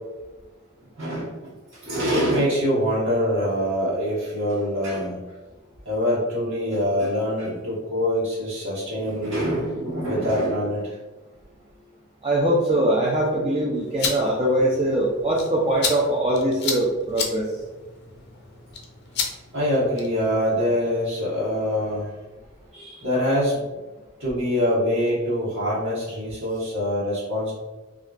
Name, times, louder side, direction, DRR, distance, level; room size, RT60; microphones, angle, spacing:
voice 1, 1.0-1.5 1.8-5.2 5.8-10.9 19.5-22.1 22.7-23.6 24.2-27.5, equal, 55° right, -6 dB, 1.2 m, -24 dB
voice 2, 12.2-17.5, right 1 dB, 25° right, -4 dB, 0.4 m, -22 dB
sound 1, 13.7-20.3, left 5 dB, 50° left, 0.5 m, -33 dB
3.6 x 2.5 x 2.4 m, 1.2 s
head